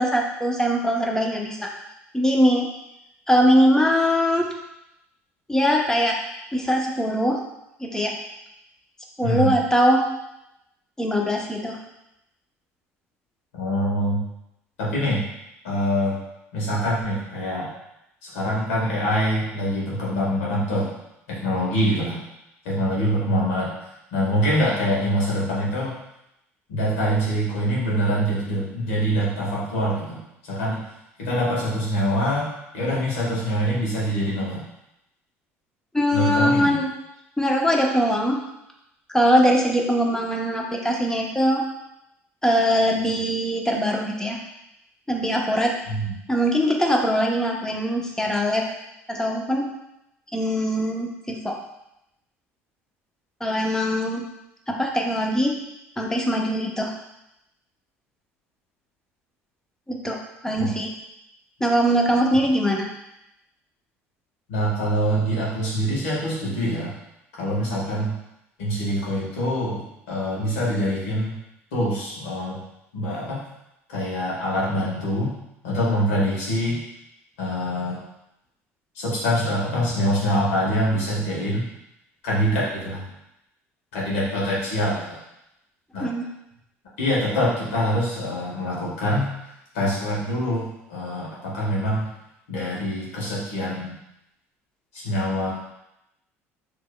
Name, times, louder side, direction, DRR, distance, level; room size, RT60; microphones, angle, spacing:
voice 1, 0.0-1.7 2.1-2.7 3.3-4.5 5.5-6.2 6.5-7.4 7.8-8.1 9.2-10.0 11.0-11.8 35.9-36.9 37.4-38.4 39.1-41.6 42.4-44.4 45.1-45.7 46.3-48.6 49.1-49.7 50.3-51.6 53.4-54.2 54.7-55.6 56.0-56.9 59.9-60.2 60.4-60.9 61.6-62.9 86.0-86.3, equal, 10° left, 0 dB, 0.9 m, -21 dB
voice 2, 9.2-9.6 13.5-14.2 14.8-15.2 15.6-16.2 16.5-17.7 18.2-20.9 21.3-22.2 22.6-23.7 24.1-25.9 26.7-30.8 31.2-34.6 36.1-36.8 45.9-46.1 60.6-60.7 64.5-66.9 67.4-68.1 68.6-71.3 71.7-72.6 72.9-73.4 73.9-75.3 75.6-76.8 77.4-78.0 78.9-81.7 82.2-83.1 83.9-85.2 85.9-86.1 87.0-89.3 89.7-92.1 92.5-94.0 94.9-95.5, equal, 70° left, -5 dB, 1.6 m, -24 dB
6.5 x 3.1 x 2.2 m, 0.85 s
figure-of-eight pair, 60°, 7 cm